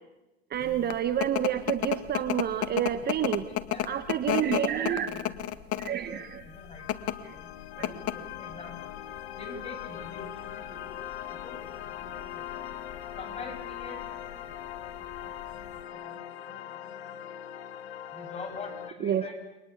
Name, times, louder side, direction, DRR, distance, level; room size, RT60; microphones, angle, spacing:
voice 1, 0.5-3.4 3.9-5.1 5.8-6.4 7.8-7.9 19.0-19.2, right 10 dB, 30° right, 10 dB, 1.5 m, -29 dB
sound 1, 0.6-15.8, left 12 dB, 45° left, 1.8 m, -34 dB
voice 2, 3.5-4.0 4.8-5.3 6.1-8.9 9.4-12.7 13.1-17.4 18.1-19.5, left 3 dB, 20° left, 2 dB, 7.9 m, -46 dB
sound 2, 6.0-18.9, left 11 dB, 70° left, 2.1 m, -41 dB
29.0 x 23.5 x 8.5 m, 1.0 s
hypercardioid pair, 120°, 33 cm